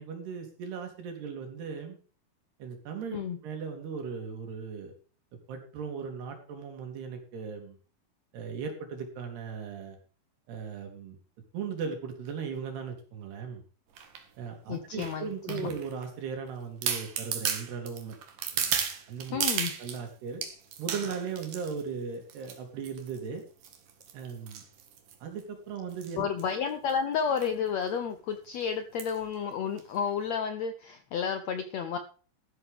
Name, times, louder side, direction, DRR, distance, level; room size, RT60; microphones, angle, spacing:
voice 1, 0.0-2.0 2.6-4.9 5.5-7.8 8.3-10.0 10.5-11.2 11.5-13.6 14.4-18.2 18.5-18.8 19.1-19.4 19.8-20.4 20.8-23.4 24.1-24.6 25.2-26.3, right 6 dB, 90° right, 4 dB, 5.0 m, -37 dB
sound 1, 14.0-14.2 15.0-16.0 16.5-16.6 16.8-20.0 20.4-21.8 22.3-22.6 22.8-23.2 23.6-25.4 25.9-26.1 26.4-26.5 26.7-26.9 27.4-27.5 27.9-28.0 29.0-29.2 29.8-29.9, right 7 dB, 60° right, 3.3 m, -34 dB
voice 2, 14.7-15.7 19.3-19.7 26.2-32.0, left 7 dB, 85° left, 8 dB, 1.5 m, -31 dB
13.5 x 12.0 x 3.6 m, 0.39 s
omnidirectional pair, 4.5 m